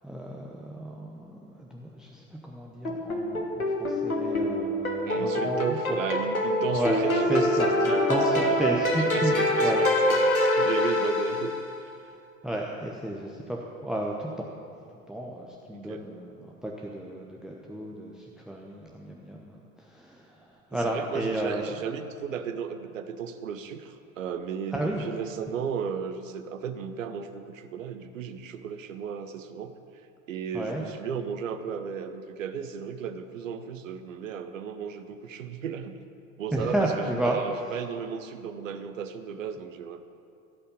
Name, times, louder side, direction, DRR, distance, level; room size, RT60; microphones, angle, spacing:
voice 1, 0.0-6.0 6.7-7.0 7.3-9.8 12.4-14.3 15.1-21.7 24.7-25.0 30.5-30.8 36.5-37.4, right 1 dB, ahead, -1 dB, 0.9 m, -32 dB
sound 1, 2.8-11.7, left 1 dB, 85° left, 1.6 m, -25 dB
voice 2, 5.0-8.6 9.0-11.6 15.7-16.0 20.7-29.7 30.3-35.9 36.4-40.0, right 7 dB, 65° right, 9 dB, 1.0 m, -35 dB
16.0 x 5.6 x 8.6 m, 2.6 s
figure-of-eight pair, 80°, 41 cm